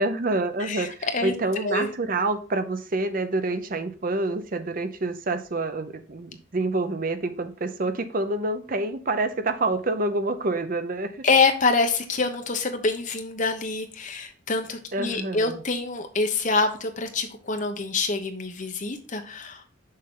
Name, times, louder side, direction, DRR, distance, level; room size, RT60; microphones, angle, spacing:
voice 1, 0.0-11.2 14.9-15.6, right 2 dB, 40° right, 9 dB, 0.6 m, -27 dB
voice 2, 0.6-1.3 1.6-1.9 11.2-19.6, left 3 dB, 40° left, 6 dB, 0.9 m, -26 dB
6.5 x 5.7 x 3.8 m, 0.38 s
head